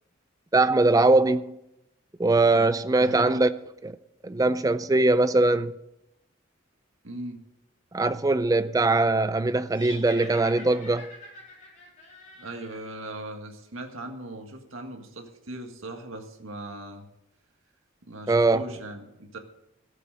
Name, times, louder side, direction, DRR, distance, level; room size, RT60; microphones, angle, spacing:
voice 1, 0.5-1.6 2.2-3.5 3.8-4.0 4.2-5.7 7.9-11.1 18.3-18.6, right 2 dB, 15° right, 0.4 m, -21 dB
voice 2, 3.0-3.4 7.0-7.4 12.4-17.1 18.1-19.4, right 1 dB, 80° right, 1.8 m, -39 dB
sound 1, 9.7-13.1, left 2 dB, 35° left, 3.9 m, -45 dB
14.0 x 7.6 x 6.4 m
head